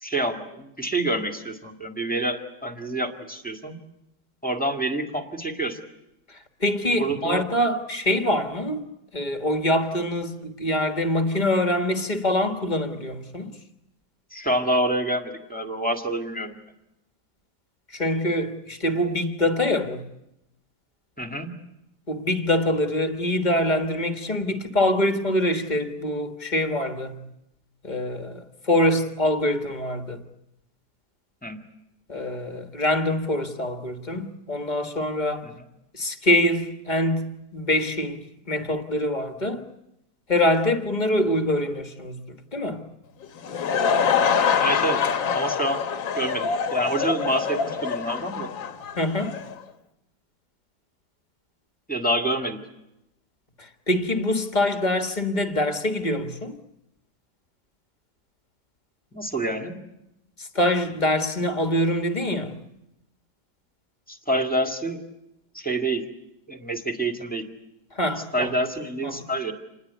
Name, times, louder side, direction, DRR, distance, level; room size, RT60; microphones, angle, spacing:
voice 1, 0.0-3.8 4.4-5.8 7.0-7.4 14.3-16.6 21.2-21.6 31.4-31.6 35.4-35.7 44.6-45.1 45.3-45.8 46.2-48.5 51.9-52.6 59.1-59.8 64.1-65.0 65.5-66.1 66.5-67.5 68.3-69.5, right 1 dB, 5° left, 1.8 m, -27 dB
voice 2, 6.3-8.8 9.1-13.6 17.9-20.0 22.1-27.2 27.8-30.2 32.1-35.5 35.9-39.6 40.3-42.8 48.9-49.4 53.6-56.5 60.4-62.5 67.9-68.5 69.0-69.2, left 1 dB, 25° left, 1.5 m, -24 dB
Laughter / Crowd, 43.2-49.5, left 6 dB, 75° left, 2.0 m, -25 dB
27.0 x 20.5 x 8.2 m
omnidirectional pair, 2.1 m